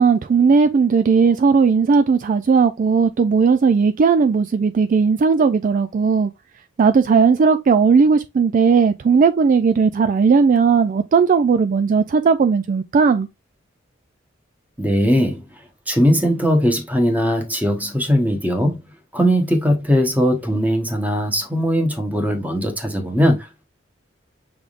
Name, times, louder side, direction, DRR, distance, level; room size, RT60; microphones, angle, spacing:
voice 1, 0.0-6.3 6.8-13.3, right 5 dB, 40° right, 0.3 m, -16 dB
voice 2, 14.8-15.4 15.9-18.8 19.1-23.7, equal, 10° right, 1.1 m, -19 dB
6.2 x 3.5 x 2.4 m
head